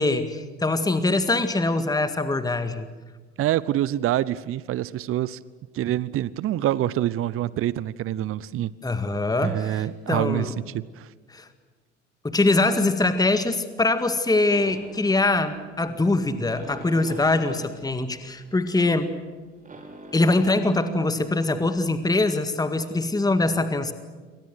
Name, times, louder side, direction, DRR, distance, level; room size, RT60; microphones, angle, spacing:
voice 1, 0.0-2.9 8.8-10.5 11.3-11.5 12.2-19.1 20.1-23.9, left 2 dB, 10° left, 10 dB, 1.9 m, -23 dB
voice 2, 3.4-5.4 5.7-8.7 9.4-11.1, right 13 dB, 40° right, 21 dB, 0.9 m, -26 dB
sound 1, 14.5-22.0, right 2 dB, 20° right, 6.5 m, -46 dB
28.0 x 25.5 x 6.3 m, 1.4 s
figure-of-eight pair, 60°, 34 cm